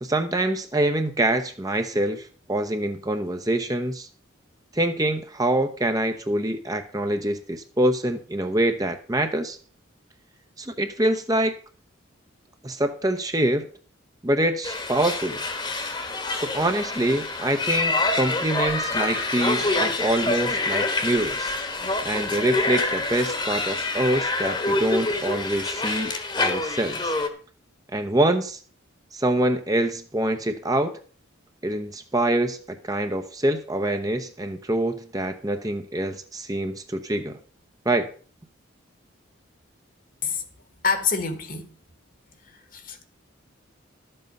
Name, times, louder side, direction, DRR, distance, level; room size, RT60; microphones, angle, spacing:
voice 1, 0.0-4.1 4.7-9.6 10.6-11.5 12.6-13.7 14.2-15.4 16.3-21.5 22.0-27.1 27.9-28.6 29.1-30.9 31.6-32.6 32.8-37.4 37.9-38.1, right 1 dB, 15° right, 0.8 m, -25 dB
sound 1, 14.6-27.3, left 2 dB, 20° left, 1.3 m, -26 dB
voice 2, 40.8-41.7 42.7-43.0, left 5 dB, 40° left, 1.4 m, -26 dB
12.5 x 7.8 x 5.3 m
head